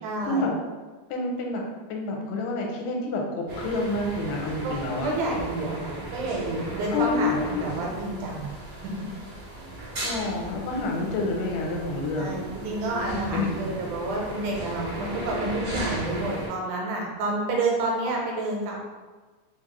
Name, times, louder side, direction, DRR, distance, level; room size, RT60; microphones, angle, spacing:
voice 1, 0.0-0.5 4.6-4.7 5.0-8.5 8.8-8.9 12.2-18.8, right 2 dB, 85° right, -1 dB, 2.2 m, -29 dB
voice 2, 1.1-1.6 1.9-5.1 6.9-7.6 10.0-12.4 13.0-13.7, left 2 dB, 85° left, 0 dB, 2.2 m, -28 dB
sound 1, 3.5-16.5, right 1 dB, 40° right, 1.3 m, -36 dB
4.8 x 2.3 x 3.0 m, 1.3 s
omnidirectional pair, 3.6 m